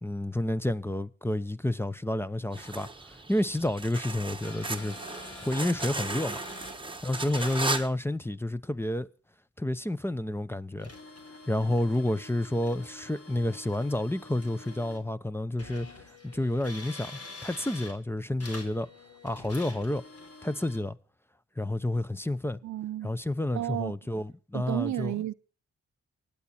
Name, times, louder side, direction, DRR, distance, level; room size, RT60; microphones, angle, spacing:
voice 1, 0.0-5.0 5.4-6.4 7.0-9.1 9.6-10.9 11.5-18.9 19.2-20.0 20.4-21.0 21.6-22.6 23.0-25.1, left 1 dB, 10° left, 0.8 m, -30 dB
sound 1, 2.5-7.9, right 2 dB, 15° right, 1.2 m, -36 dB
sound 2, 4.4-6.8 7.2-7.9 10.8-15.0 15.6-18.0 18.4-20.8, left 2 dB, 55° left, 3.4 m, -46 dB
voice 2, 22.6-23.1 23.5-23.9 24.5-25.3, right 13 dB, 75° right, 0.6 m, -32 dB
24.5 x 8.5 x 4.4 m
supercardioid pair, 45°, 29 cm